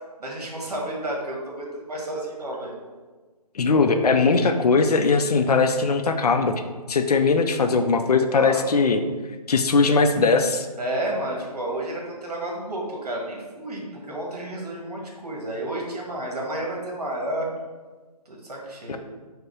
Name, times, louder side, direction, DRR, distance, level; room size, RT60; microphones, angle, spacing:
voice 1, 0.2-2.7 8.3-8.6 10.8-17.5 18.2-19.0, right 1 dB, 75° right, -2 dB, 1.5 m, -31 dB
voice 2, 3.5-9.0 9.5-10.7 18.9-19.0, left 4 dB, 70° left, 7 dB, 0.5 m, -20 dB
4.8 x 2.2 x 4.8 m, 1.3 s
hypercardioid pair, 165°, 20 cm